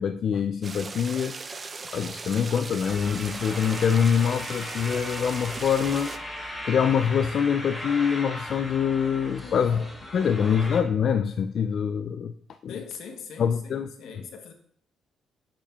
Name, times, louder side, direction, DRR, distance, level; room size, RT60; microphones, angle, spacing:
voice 1, 0.0-9.8 10.1-12.3 12.6-12.7 13.4-13.9, left 7 dB, 60° left, 8 dB, 0.3 m, -25 dB
sound 1, 0.6-6.2, right 4 dB, 35° right, 0.4 m, -38 dB
sound 2, 2.8-10.8, left 1 dB, 10° left, 2.9 m, -38 dB
voice 2, 9.4-10.0 10.4-10.7 12.7-14.5, left 6 dB, 80° left, 4 dB, 1.0 m, -42 dB
7.3 x 7.1 x 2.3 m, 0.64 s
cardioid pair, 90°, 0 cm